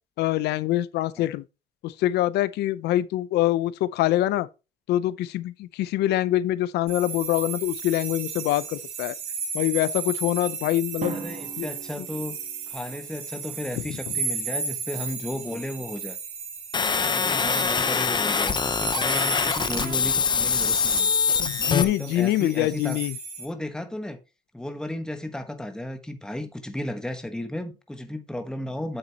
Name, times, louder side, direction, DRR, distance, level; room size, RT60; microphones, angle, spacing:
voice 1, 0.2-1.4 1.8-4.5 4.9-9.1 9.5-11.2 11.6-11.7 19.8-20.0 21.4-23.1, left 14 dB, 80° left, 0.7 m, -25 dB
sound 1, 6.9-23.4, right 5 dB, 70° right, 4.7 m, -34 dB
Drum, 11.0-13.0, right 6 dB, 40° right, 1.2 m, -38 dB
voice 2, 11.1-12.4 12.7-16.2 17.0-21.1 21.6-23.0 23.4-24.2 24.5-29.0, left 1 dB, 5° left, 1.3 m, -34 dB
sound 2, 16.7-21.8, left 6 dB, 25° left, 0.9 m, -24 dB
8.9 x 7.3 x 2.9 m
cardioid pair, 110°, 17 cm